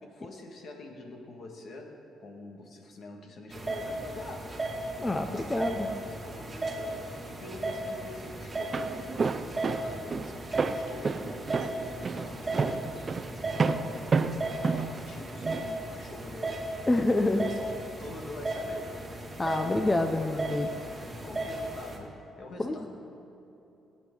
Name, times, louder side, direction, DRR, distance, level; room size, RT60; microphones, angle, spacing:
voice 1, 0.0-4.7 5.0-13.3 13.6-19.1 19.5-20.3 21.0-23.2, left 2 dB, 60° left, 2 dB, 1.8 m, -45 dB
sound 1, 3.5-22.0, right 2 dB, 20° right, 2.1 m, -36 dB
voice 2, 5.0-5.9 16.9-17.5 19.4-20.7 20.9-21.1 22.6-22.8, left 2 dB, 20° left, 5 dB, 0.6 m, -27 dB
Walk footsteps, 8.5-15.7, right 4 dB, 40° right, 0.5 m, -30 dB
20.5 x 8.3 x 3.8 m, 3.0 s
cardioid pair, 90°, 0 cm